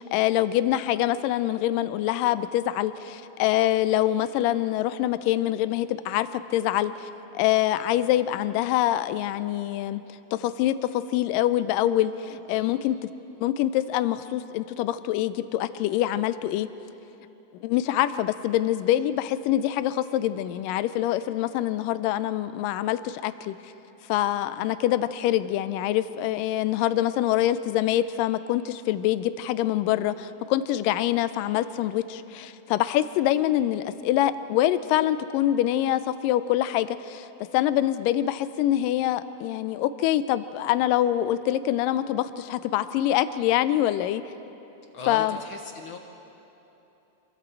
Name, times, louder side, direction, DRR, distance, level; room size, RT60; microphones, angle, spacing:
voice 1, 0.0-7.1 7.3-10.0 10.3-13.0 13.4-16.7 17.6-23.6 24.1-44.2 45.1-45.4, left 13 dB, 85° left, 13 dB, 2.3 m, -25 dB
voice 2, 44.9-46.0, left 4 dB, 65° left, 3 dB, 1.4 m, -38 dB
27.0 x 22.0 x 4.5 m, 3.0 s
omnidirectional pair, 3.9 m